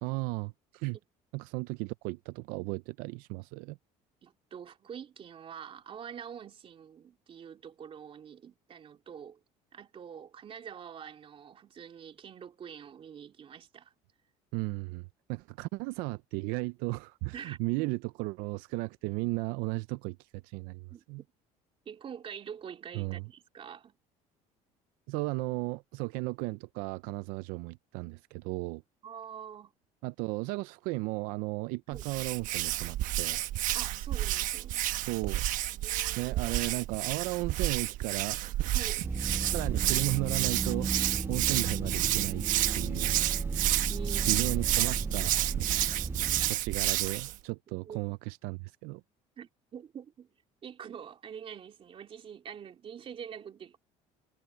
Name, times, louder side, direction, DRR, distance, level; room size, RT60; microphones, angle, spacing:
voice 1, 0.0-1.0 1.3-3.8 14.5-21.2 23.0-23.3 25.1-28.8 30.0-33.4 35.1-35.4 36.2-38.7 39.4-40.9 41.3-42.5 42.7-43.2 44.3-45.7 46.5-49.0, right 24 dB, 85° right, 0.5 m, -35 dB
voice 2, 4.2-9.4 9.7-13.9 17.3-17.9 20.9-21.0 21.8-24.0 29.0-29.7 31.9-32.1 33.7-34.8 35.8-36.4 38.7-39.0 43.9-44.3 47.9-48.1 49.4-50.3 50.6-53.8, right 8 dB, 40° right, 2.8 m, -45 dB
Hands, 31.9-47.4, right 15 dB, 65° right, 1.1 m, -30 dB
sound 1, 39.0-46.5, right 4 dB, 15° right, 0.6 m, -34 dB
cardioid pair, 115°, 15 cm